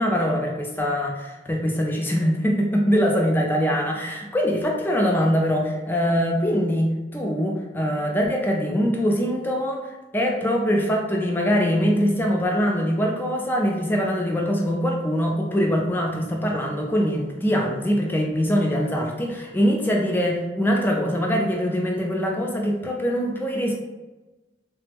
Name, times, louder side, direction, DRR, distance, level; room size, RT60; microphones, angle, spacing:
voice 1, 0.0-23.7, equal, 10° left, 0 dB, 0.3 m, -23 dB
3.2 x 2.0 x 3.2 m, 1.1 s
head